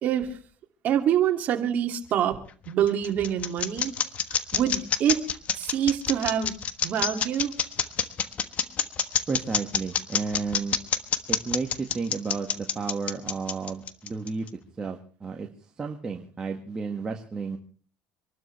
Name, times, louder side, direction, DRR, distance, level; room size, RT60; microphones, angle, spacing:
voice 1, 0.0-0.4 0.8-2.4 2.7-3.9 4.5-5.2 5.5-6.6 6.8-7.5, right 9 dB, 50° right, 4 dB, 2.6 m, -25 dB
sound 1, 2.5-14.5, left 8 dB, 40° left, 1.3 m, -27 dB
voice 2, 9.3-10.8 11.3-14.5 14.8-15.5 15.8-17.6, right 4 dB, 20° right, 2 dB, 1.8 m, -32 dB
26.5 x 12.5 x 3.3 m, 0.40 s
supercardioid pair, 115°, 4 cm